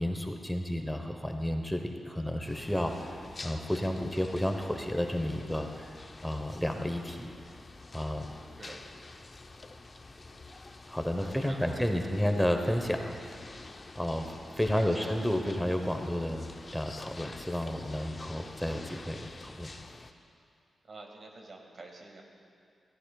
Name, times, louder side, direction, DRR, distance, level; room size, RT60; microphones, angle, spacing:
voice 1, 0.0-5.9 6.2-7.3 7.9-8.3 10.9-13.4 13.9-19.7, equal, 5° left, 4 dB, 0.9 m, -31 dB
sound 1, 2.5-20.1, left 3 dB, 40° left, 0.7 m, -48 dB
voice 2, 11.2-12.4 14.1-14.5 14.8-15.6 20.8-22.2, right 2 dB, 55° right, 1 dB, 1.9 m, -48 dB
17.0 x 14.0 x 2.3 m, 2.4 s
cardioid pair, 60°, 0 cm